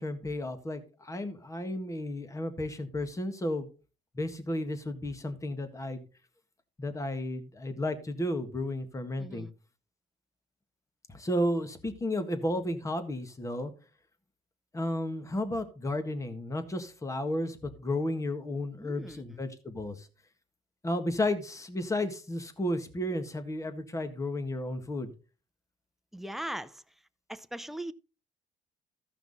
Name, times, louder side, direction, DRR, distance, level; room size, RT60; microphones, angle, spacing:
voice 1, 0.0-3.7 4.2-6.1 6.8-9.5 11.1-13.7 14.7-20.1 20.8-25.1, left 1 dB, 20° left, 1.7 m, -33 dB
voice 2, 9.2-9.5 18.8-19.4 26.1-26.8 27.3-27.9, right 1 dB, ahead, 0.6 m, -40 dB
14.5 x 5.8 x 4.1 m
cardioid pair, 110°, 17 cm